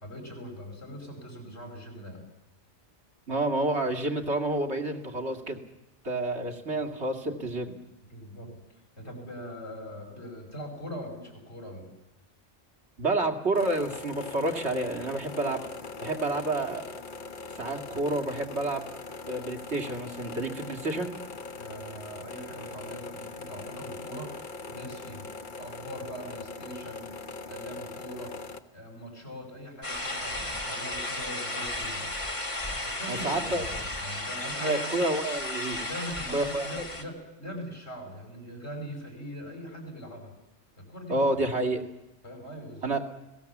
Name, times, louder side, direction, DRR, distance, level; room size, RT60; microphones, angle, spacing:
voice 1, 0.0-2.2 8.0-8.6 9.0-11.9 21.6-24.3 24.7-25.3 25.6-27.2 27.5-28.3 28.7-32.1 32.9-35.0 35.8-40.3 40.8-41.3 42.2-42.9, equal, 75° left, 2 dB, 5.7 m, -41 dB
voice 2, 3.3-5.6 6.0-7.7 13.0-15.7 16.0-16.8 17.5-18.8 19.3-21.1 33.1-33.6 34.6-35.9 36.3-36.7 41.1-41.8 42.8-43.0, right 2 dB, 75° right, 3 dB, 2.5 m, -29 dB
sound 1, 13.6-28.6, left 3 dB, 45° left, 1.1 m, -41 dB
sound 2, 29.8-37.0, left 1 dB, 30° left, 2.1 m, -34 dB
30.0 x 18.0 x 7.3 m, 0.99 s
omnidirectional pair, 1.1 m